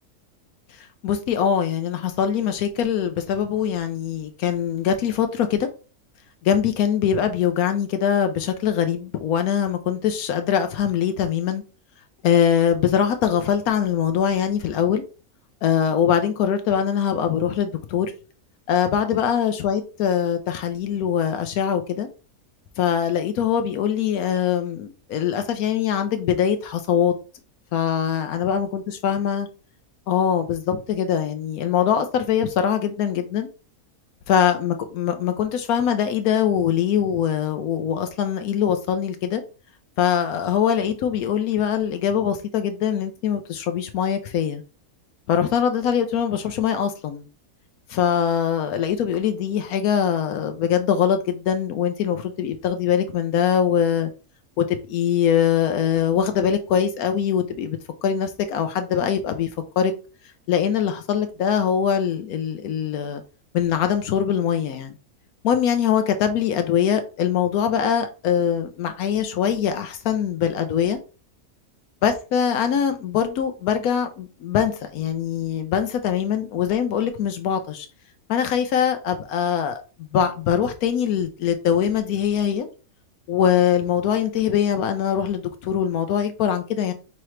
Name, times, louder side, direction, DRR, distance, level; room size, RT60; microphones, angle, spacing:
voice 1, 0.7-5.7 6.4-11.6 12.2-15.0 15.6-18.1 18.7-22.1 22.8-27.1 27.7-29.5 30.1-33.5 34.3-39.4 40.0-44.6 45.3-47.3 47.9-54.1 54.6-59.5 59.8-59.9 60.5-63.2 63.5-64.9 65.4-71.0 72.0-77.9 78.3-82.7 83.3-86.9, left 8 dB, 80° left, 1.1 m, -22 dB
5.7 x 2.9 x 3.1 m
omnidirectional pair, 1.5 m